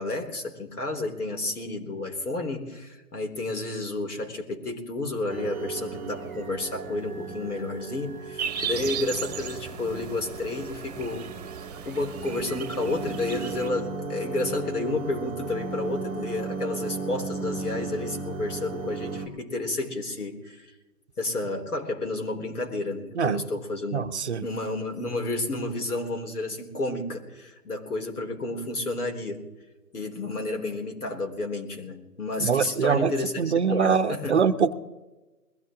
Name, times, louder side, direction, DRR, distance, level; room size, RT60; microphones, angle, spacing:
voice 1, 0.0-11.3 11.9-20.7 21.2-24.0 24.4-29.4 29.9-34.4, left 2 dB, 70° left, 3 dB, 3.8 m, -31 dB
sound 1, 5.3-19.3, right 4 dB, ahead, 0.6 m, -36 dB
sound 2, 8.4-13.7, right 8 dB, 25° right, 1.3 m, -36 dB
voice 2, 23.9-24.4 32.4-34.7, right 6 dB, 45° right, 9 dB, 0.9 m, -24 dB
21.0 x 16.0 x 3.7 m, 1.1 s
figure-of-eight pair, 155°, 46 cm